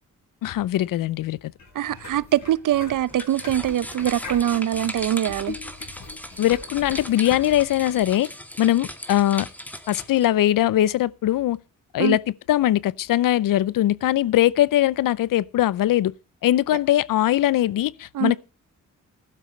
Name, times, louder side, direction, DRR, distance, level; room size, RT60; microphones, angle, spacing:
voice 1, 0.4-1.4 6.4-8.3 8.6-9.5 9.9-11.6 11.9-12.2 12.5-16.1 16.4-18.4, left 13 dB, 80° left, 0.6 m, -21 dB
sound 1, 1.6-8.1, left 4 dB, 55° left, 5.7 m, -41 dB
voice 2, 1.7-5.5 12.0-12.2 18.1-18.3, right 11 dB, 70° right, 0.7 m, -23 dB
sound 2, 3.1-10.2, equal, 5° left, 1.8 m, -38 dB
15.5 x 12.0 x 3.2 m
cardioid pair, 70°, 33 cm